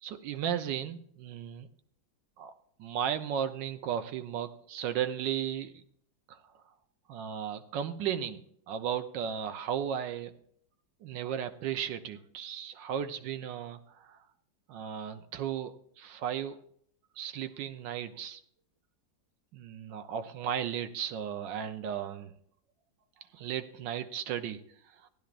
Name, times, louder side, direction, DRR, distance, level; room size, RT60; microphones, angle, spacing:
voice 1, 0.0-1.7 2.4-2.5 2.8-5.8 6.3-6.4 7.1-8.4 8.7-10.3 11.0-14.2 14.7-16.6 17.2-18.4 19.5-22.3 23.3-24.6 25.0-25.1, right 9 dB, 75° right, 9 dB, 1.4 m, -35 dB
15.5 x 11.5 x 2.5 m, 0.65 s
omnidirectional pair, 2.0 m